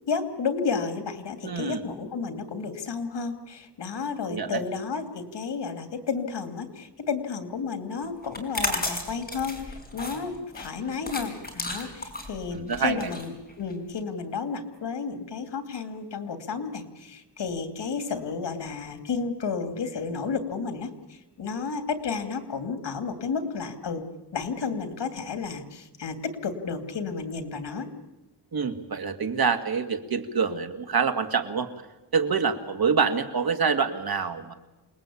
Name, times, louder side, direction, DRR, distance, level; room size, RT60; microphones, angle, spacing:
voice 1, 0.1-13.3 13.6-24.0 24.3-27.9, left 5 dB, 85° left, 9 dB, 2.7 m, -32 dB
voice 2, 1.4-1.8 4.2-4.6 12.5-13.1 28.5-31.7 32.1-34.5, right 5 dB, 60° right, 7 dB, 2.2 m, -26 dB
sound 1, 8.2-14.0, left 2 dB, 20° left, 5.0 m, -33 dB
28.0 x 20.0 x 8.7 m, 1.0 s
wide cardioid pair, 105°, 41 cm